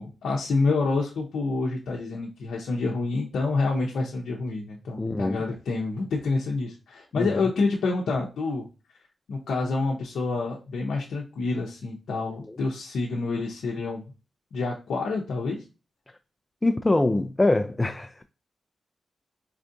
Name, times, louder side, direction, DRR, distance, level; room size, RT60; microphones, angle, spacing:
voice 1, 0.0-8.7 9.3-14.1 14.5-15.6, left 3 dB, 85° left, 0.6 m, -28 dB
voice 2, 5.0-5.4 7.2-7.3 12.5-12.6 16.6-18.2, left 2 dB, 25° left, 0.4 m, -24 dB
4.5 x 2.4 x 2.6 m
cardioid pair, 55°, 0 cm